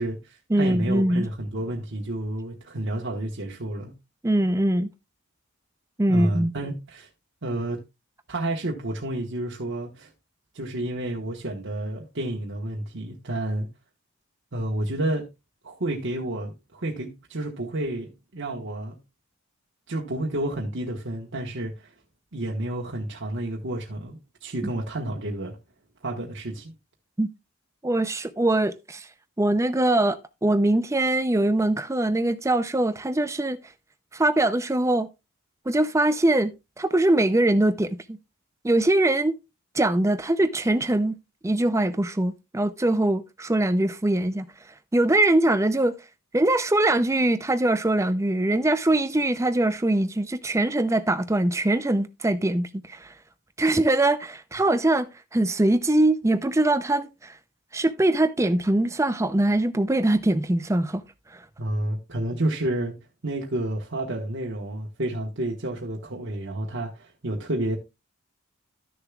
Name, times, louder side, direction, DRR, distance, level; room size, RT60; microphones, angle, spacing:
voice 1, 0.0-3.9 6.1-7.1 7.4-7.8 8.3-10.1 10.5-13.7 14.5-15.3 15.6-19.0 19.9-21.9 22.3-25.6 26.0-26.7 61.6-62.9 63.2-67.8, right 1 dB, 55° right, 1.3 m, -30 dB
voice 2, 0.5-1.3 4.2-4.9 6.0-6.5 27.2-27.3 27.8-29.1 29.4-33.6 34.1-35.1 35.7-38.2 38.6-39.3 39.7-41.2 41.4-44.5 44.9-46.0 46.3-53.1 53.6-55.1 55.3-57.4 57.7-61.0 61.3-61.4, right 1 dB, 15° right, 0.5 m, -22 dB
13.0 x 6.7 x 2.3 m
head